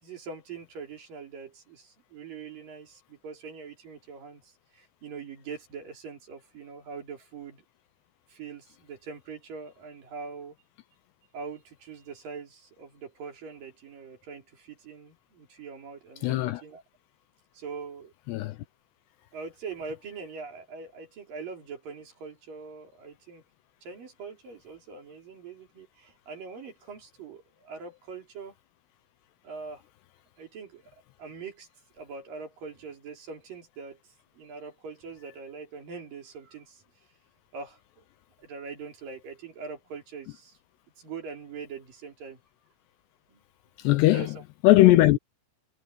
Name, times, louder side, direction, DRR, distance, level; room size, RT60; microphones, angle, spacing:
voice 1, 0.0-7.6 8.3-10.6 11.3-16.8 17.5-18.1 19.3-23.4 23.8-28.5 29.4-29.8 30.4-30.8 31.2-31.7 31.9-34.0 34.4-36.8 37.5-38.0 38.4-40.6 41.0-42.4 43.3-43.4 44.1-44.3, right 5 dB, 50° right, 5.4 m, -42 dB
voice 2, 16.2-16.6 18.3-18.6 43.8-44.4 44.6-45.2, left 17 dB, 75° left, 2.7 m, -19 dB
omnidirectional pair, 5.2 m